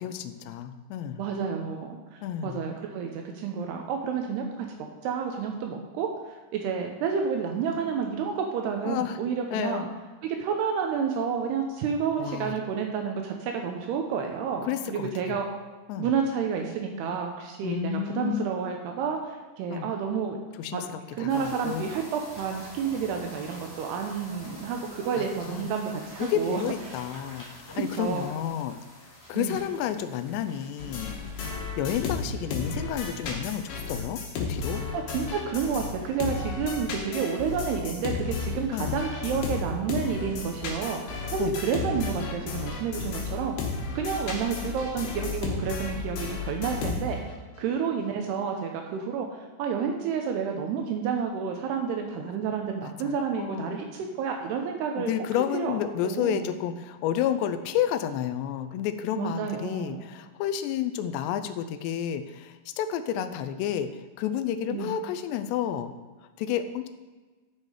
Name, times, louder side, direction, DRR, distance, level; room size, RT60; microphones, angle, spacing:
voice 1, 0.0-1.3 2.2-2.6 8.8-9.2 9.5-9.8 12.2-12.5 14.6-15.4 15.9-16.1 17.6-18.5 19.7-19.9 20.6-20.8 21.2-21.8 25.2-25.6 26.2-28.8 29.3-31.2 31.8-34.9 38.7-38.9 41.4-41.6 52.8-53.8 55.0-65.9 66.4-66.9, left 9 dB, 85° left, 9 dB, 2.5 m, -31 dB
voice 2, 1.2-4.7 5.0-9.9 10.2-15.5 16.0-20.4 20.7-20.8 21.2-26.6 27.7-28.3 29.3-29.5 34.9-43.6 44.0-47.2 47.6-55.1 55.5-55.8 56.0-56.4 59.2-60.0 64.7-64.9, right 6 dB, 80° right, 3 dB, 2.4 m, -30 dB
sound 1, 21.3-33.6 33.9-34.2 34.6-34.7, equal, 20° left, 0.4 m, -47 dB
sound 2, 30.8-35.9 36.2-47.3, left 4 dB, 65° left, 3.3 m, -33 dB
11.5 x 6.5 x 4.9 m, 1.3 s
omnidirectional pair, 5.5 m